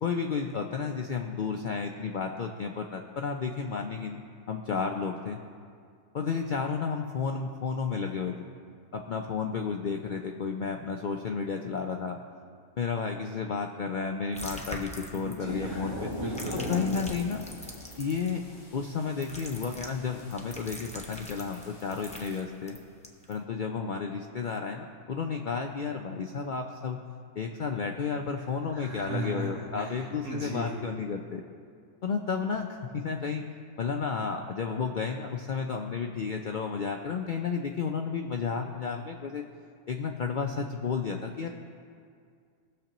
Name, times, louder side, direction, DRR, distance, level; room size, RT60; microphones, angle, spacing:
voice 1, 0.0-4.2 4.5-5.4 6.1-8.3 8.9-12.2 12.8-16.1 16.7-17.4 18.0-18.4 18.7-22.8 23.3-27.0 27.4-31.4 32.0-33.4 33.8-39.4 39.9-41.5, left 5 dB, 85° left, 3 dB, 0.4 m, -32 dB
sound 1, 14.3-15.6 16.1-18.3 19.2-23.3, left 1 dB, 10° left, 0.5 m, -43 dB
voice 2, 15.1-16.8 28.7-30.8, right 1 dB, 65° right, -3 dB, 1.7 m, -37 dB
sound 2, 15.4-22.4, left 1 dB, 35° left, 1.9 m, -41 dB
19.0 x 6.7 x 3.0 m, 2.2 s
omnidirectional pair, 1.5 m